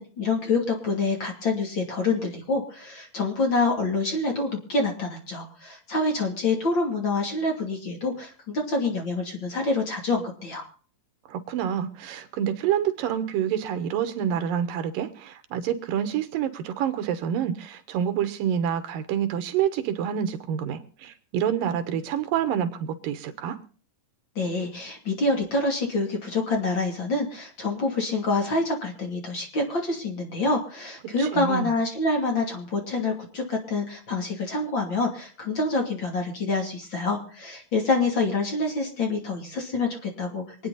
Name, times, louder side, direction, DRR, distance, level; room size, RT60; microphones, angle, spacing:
voice 1, 0.0-10.6 24.3-40.4, left 3 dB, 35° left, 2 dB, 3.2 m, -26 dB
voice 2, 11.3-23.6 31.2-31.7, right 9 dB, 80° right, 10 dB, 2.9 m, -27 dB
25.0 x 9.4 x 4.1 m, 0.41 s
omnidirectional pair, 3.9 m